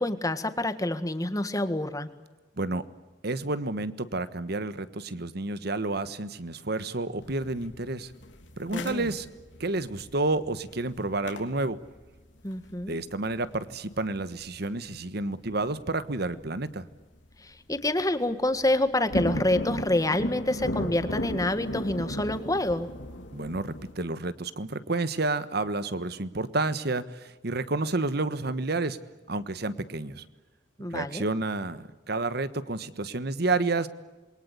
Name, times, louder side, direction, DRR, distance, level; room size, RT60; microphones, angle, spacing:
voice 1, 0.0-2.1 8.7-9.1 12.4-13.0 17.4-22.9 30.8-31.2, left 1 dB, 20° left, 10 dB, 1.7 m, -27 dB
voice 2, 2.6-2.9 3.2-8.1 8.6-9.3 9.6-11.8 12.9-16.9 23.3-29.0 29.3-30.2 30.9-33.9, right 2 dB, 60° right, 14 dB, 1.4 m, -30 dB
sound 1, 7.2-15.2 15.5-15.6 16.2-16.6 16.9-17.3 17.7-17.8 18.1-23.9, left 1 dB, 85° left, 3.3 m, -36 dB
27.5 x 22.5 x 8.3 m, 1.2 s
head